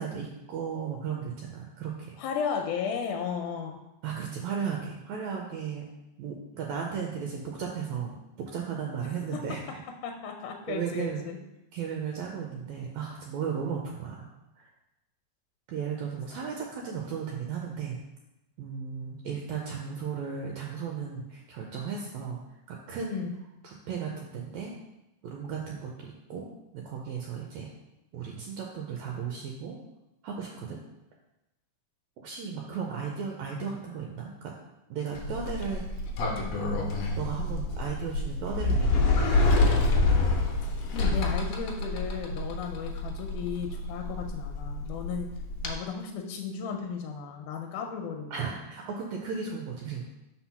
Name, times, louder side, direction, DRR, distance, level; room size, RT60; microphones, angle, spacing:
voice 1, 0.0-2.2 4.0-5.8 6.2-9.8 10.7-11.2 11.7-14.3 14.6-14.7 15.7-18.0 18.6-22.4 22.7-23.3 23.6-24.7 25.2-26.5 26.7-27.7 28.1-29.8 30.2-30.8 32.2-34.5 34.9-35.8 37.2-39.4 48.3-50.1, right 6 dB, 80° right, 0 dB, 1.8 m, -35 dB
voice 2, 2.2-3.8 10.0-11.4 23.1-23.4 40.9-45.3 45.6-48.4, left 6 dB, 85° left, 3 dB, 2.1 m, -34 dB
Sliding door, 35.2-45.7, left 2 dB, 70° left, 1.7 m, -27 dB
4.5 x 4.0 x 5.7 m, 0.94 s
omnidirectional pair, 3.5 m